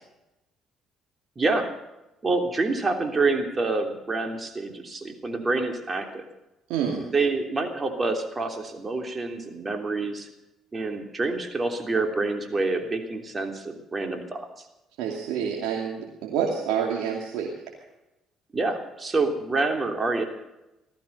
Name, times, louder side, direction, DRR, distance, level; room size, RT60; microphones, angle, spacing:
voice 1, 1.4-1.7 2.2-6.2 7.0-10.3 10.7-14.5 18.5-20.2, right 3 dB, 30° right, 4 dB, 3.2 m, -27 dB
voice 2, 6.7-7.0 15.0-17.5, right 7 dB, 85° right, -1 dB, 2.6 m, -28 dB
18.0 x 14.0 x 5.6 m, 0.96 s
supercardioid pair, 85°, 0 cm